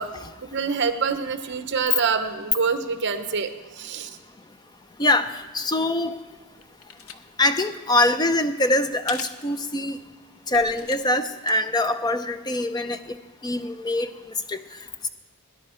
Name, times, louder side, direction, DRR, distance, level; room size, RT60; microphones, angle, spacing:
voice 1, 0.0-4.2, right 5 dB, 50° right, 9 dB, 0.9 m, -26 dB
voice 2, 5.0-6.1 7.4-10.0 10.5-13.2 13.4-14.1 14.5-14.6, left 1 dB, 20° left, 11 dB, 0.5 m, -23 dB
sound 1, 6.2-7.2 7.4-7.6 9.1-9.4 9.9-10.0 10.5-11.5 11.9-12.0, left 7 dB, 70° left, 0.7 m, -40 dB
18.5 x 10.5 x 4.4 m, 1.2 s
head